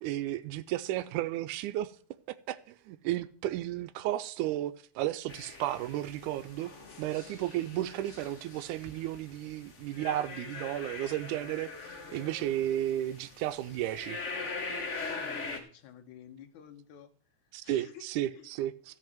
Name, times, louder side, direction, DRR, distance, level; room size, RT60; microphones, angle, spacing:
voice 1, 0.0-1.9 2.5-6.7 7.0-14.2 17.5-18.7, right 13 dB, 85° right, 2.1 m, -33 dB
sound 1, 5.3-15.6, left 4 dB, 40° left, 1.0 m, -42 dB
voice 2, 15.1-17.1 17.6-18.1 18.3-18.5, left 9 dB, 75° left, 2.6 m, -51 dB
13.5 x 5.5 x 7.6 m
omnidirectional pair, 3.5 m